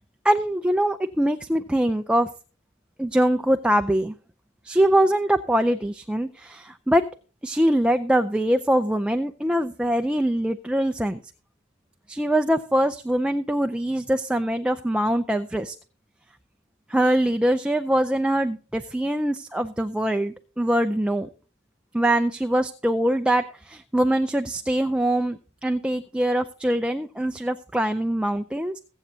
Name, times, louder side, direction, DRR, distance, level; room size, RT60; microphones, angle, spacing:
voice 1, 0.2-2.3 3.0-4.1 4.6-7.0 7.4-11.2 12.1-15.8 16.9-21.3 21.9-28.8, right 1 dB, 5° right, 7 dB, 0.5 m, -23 dB
22.0 x 8.1 x 2.8 m, 0.38 s
head